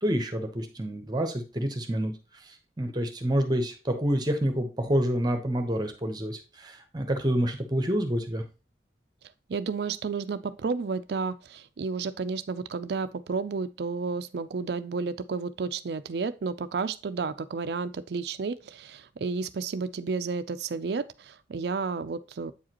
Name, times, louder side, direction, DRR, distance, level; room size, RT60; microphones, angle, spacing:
voice 1, 0.0-2.1 2.4-8.4, equal, 25° right, 0.9 m, -28 dB
voice 2, 9.5-22.5, right 4 dB, 65° right, 0.4 m, -32 dB
8.4 x 4.8 x 2.9 m
head